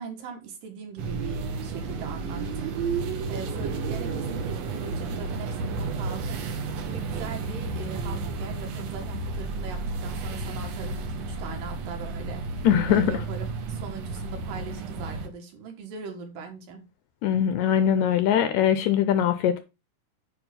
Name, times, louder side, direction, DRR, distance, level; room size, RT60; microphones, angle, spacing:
voice 1, 0.0-6.5 6.9-16.8, right 5 dB, 85° right, 3.3 m, -40 dB
sound 1, 1.0-15.3, right 4 dB, 65° right, 1.9 m, -32 dB
voice 2, 12.6-13.1 17.2-19.6, left 9 dB, 80° left, 1.7 m, -21 dB
9.0 x 3.4 x 5.1 m
omnidirectional pair, 3.8 m